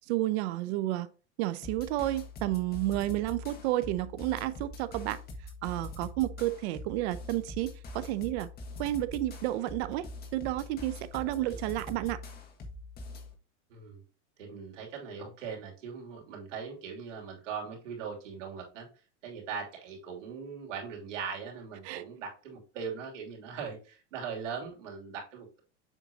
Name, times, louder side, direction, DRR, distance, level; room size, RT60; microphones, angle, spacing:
voice 1, 0.1-1.1 1.4-5.2 5.6-8.5 8.8-10.1 10.3-12.2 21.8-22.0, right 15 dB, 60° right, 0.6 m, -31 dB
sound 1, 1.6-13.3, left 2 dB, 25° left, 1.5 m, -43 dB
voice 2, 11.2-11.6 13.7-14.0 14.4-25.6, right 6 dB, 90° right, 2.9 m, -40 dB
7.3 x 5.1 x 2.8 m
supercardioid pair, 140°, 36 cm